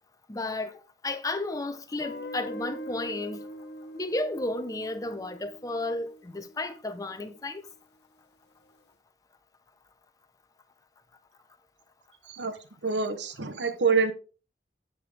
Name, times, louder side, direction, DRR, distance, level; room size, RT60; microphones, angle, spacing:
voice 1, 0.3-0.7 1.0-3.4 3.9-7.6, left 2 dB, 20° left, 0.7 m, -33 dB
Guitar, 2.0-6.9, left 1 dB, 65° left, 0.8 m, -42 dB
voice 2, 12.8-14.1, right 4 dB, 80° right, 0.9 m, -26 dB
9.9 x 5.7 x 3.4 m
head